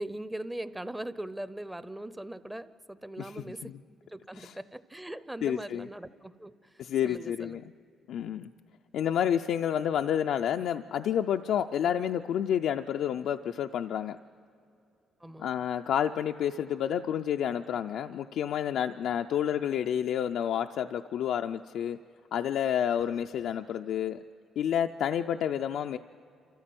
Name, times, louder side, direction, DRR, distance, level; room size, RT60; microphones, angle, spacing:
voice 1, 0.0-3.7 4.1-6.7 7.0-7.6 15.2-15.5, right 1 dB, 10° right, 14 dB, 0.7 m, -40 dB
voice 2, 5.4-5.9 6.8-7.6 8.1-8.5 8.9-14.2 15.4-22.0 22.3-24.2 24.6-26.0, left 9 dB, 75° left, 6 dB, 0.4 m, -29 dB
28.0 x 14.0 x 7.7 m, 2.6 s
cardioid pair, 90°, 0 cm